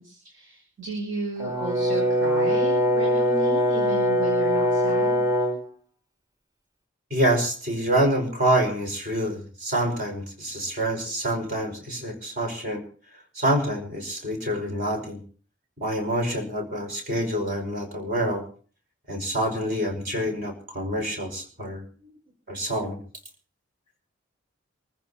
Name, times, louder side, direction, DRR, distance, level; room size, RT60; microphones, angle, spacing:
voice 1, 0.0-5.2 22.0-22.1, right 2 dB, 80° right, -1 dB, 5.9 m, -34 dB
Brass instrument, 1.4-5.6, equal, 20° right, 1.8 m, -22 dB
voice 2, 7.1-12.8 13.4-15.2 15.8-18.4 19.1-21.9 22.5-23.0, right 1 dB, 50° right, 3 dB, 5.4 m, -26 dB
28.5 x 15.0 x 2.9 m, 0.42 s
head